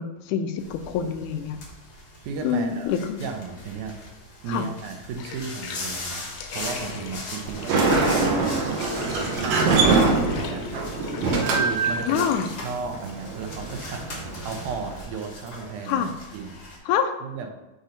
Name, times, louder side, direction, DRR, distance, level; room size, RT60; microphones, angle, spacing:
voice 1, 0.0-1.6 2.4-3.2 4.5-4.7 9.9-10.1 12.1-12.5 15.9-16.1 16.9-17.2, left 8 dB, 90° left, 8 dB, 2.1 m, -26 dB
sound 1, 0.6-16.8, left 2 dB, 55° left, 1.0 m, -40 dB
voice 2, 2.2-2.9 3.2-4.0 4.4-10.8 11.3-12.3 12.6-16.6 17.2-17.5, right 5 dB, 85° right, 4 dB, 2.3 m, -34 dB
Bathtub (filling or washing), 5.1-16.8, left 6 dB, 75° left, 1.7 m, -40 dB
Sliding door, 7.5-15.0, right 4 dB, 65° right, 1.7 m, -24 dB
7.7 x 2.8 x 5.0 m, 1.0 s
omnidirectional pair, 3.5 m